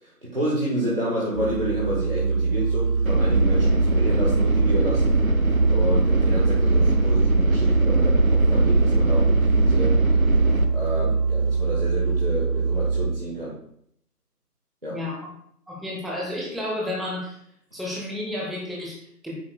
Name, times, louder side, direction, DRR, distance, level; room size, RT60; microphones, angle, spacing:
voice 1, 0.0-5.2 5.7-10.0 10.7-13.6 14.8-15.0, right 1 dB, 35° right, -7 dB, 1.5 m, -29 dB
Musical instrument, 1.3-13.4, right 4 dB, 90° right, 0.7 m, -22 dB
sound 1, 3.1-10.7, right 1 dB, 60° right, 0.8 m, -23 dB
voice 2, 15.7-17.4 17.7-19.4, left 1 dB, ahead, -3 dB, 0.8 m, -31 dB
9.5 x 6.7 x 2.2 m, 0.67 s
figure-of-eight pair, 175°, 47 cm